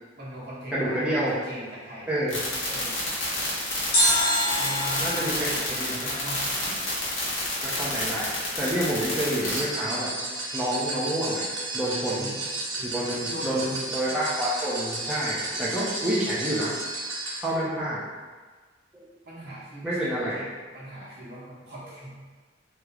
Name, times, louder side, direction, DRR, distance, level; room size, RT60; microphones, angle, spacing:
voice 1, 0.2-2.1 2.7-3.0 4.5-6.8 7.2-7.3 12.1-12.4 12.7-14.0 19.2-20.5 20.7-22.3, right 1 dB, 60° right, -8 dB, 1.0 m, -40 dB
voice 2, 0.7-1.3 2.1-2.4 5.0-5.5 5.8-6.0 7.6-10.1 10.5-11.4 11.7-12.3 12.8-16.7 17.4-18.0 18.9-19.0 19.8-20.4, right 1 dB, 5° right, -9 dB, 0.5 m, -28 dB
sound 1, 2.3-9.6, left 2 dB, 85° left, 1.1 m, -29 dB
sound 2, 3.9-7.0 7.3-7.4, equal, 35° left, 0.8 m, -27 dB
sound 3, 9.4-17.4, right 2 dB, 90° right, 1.0 m, -33 dB
3.0 x 2.0 x 3.5 m, 1.4 s
head